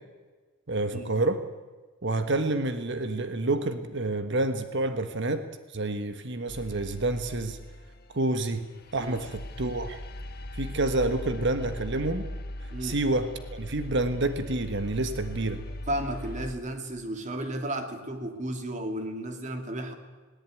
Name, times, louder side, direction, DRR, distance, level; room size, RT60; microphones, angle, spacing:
voice 1, 0.7-1.4 2.0-5.4 5.7-7.6 8.1-8.6 8.9-10.0 10.5-12.3 12.8-15.6, right 2 dB, 60° right, 9 dB, 1.4 m, -28 dB
sound 1, 6.5-8.3 8.8-16.5, left 1 dB, 45° left, 1.6 m, -39 dB
voice 2, 15.9-19.9, right 1 dB, 35° right, 6 dB, 2.7 m, -33 dB
19.5 x 18.0 x 9.3 m, 1.3 s
head